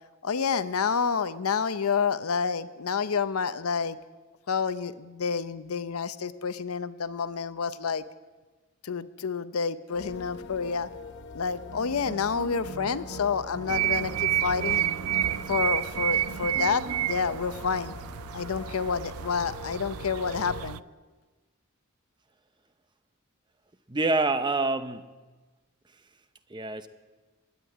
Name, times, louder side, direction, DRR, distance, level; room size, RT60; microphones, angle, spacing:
voice 1, 0.2-4.0 4.5-8.0 8.8-10.9 11.3-14.8 15.5-17.9 18.3-20.8, left 5 dB, 90° left, 13 dB, 0.6 m, -29 dB
sound 1, 9.9-20.6, left 3 dB, 55° left, 0.9 m, -44 dB
sound 2, 11.7-18.3, right 3 dB, 60° right, 1.0 m, -43 dB
sound 3, 13.7-20.8, right 12 dB, 85° right, 0.3 m, -30 dB
voice 2, 23.9-25.0 26.5-26.9, right 3 dB, 20° right, 11 dB, 0.6 m, -26 dB
12.5 x 9.7 x 9.4 m, 1.3 s
head